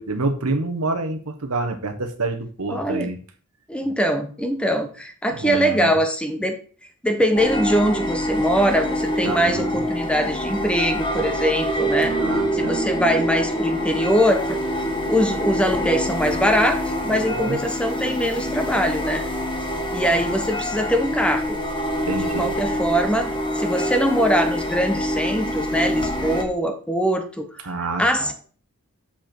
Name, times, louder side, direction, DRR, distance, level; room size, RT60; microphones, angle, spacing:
voice 1, 0.0-3.2 5.4-5.9 9.2-9.8 12.2-12.8 17.1-17.6 20.2-20.3 22.1-22.5 27.6-28.3, right 2 dB, 85° right, 7 dB, 1.2 m, -27 dB
voice 2, 2.7-3.1 3.7-6.6 7.0-12.2 12.5-14.6 15.1-16.8 17.0-19.2 19.9-21.6 22.2-23.3 23.5-27.7 28.0-28.3, equal, 5° left, 6 dB, 0.9 m, -22 dB
sound 1, 7.4-26.4, equal, 20° left, 1.2 m, -25 dB
7.3 x 5.1 x 4.5 m, 0.41 s
head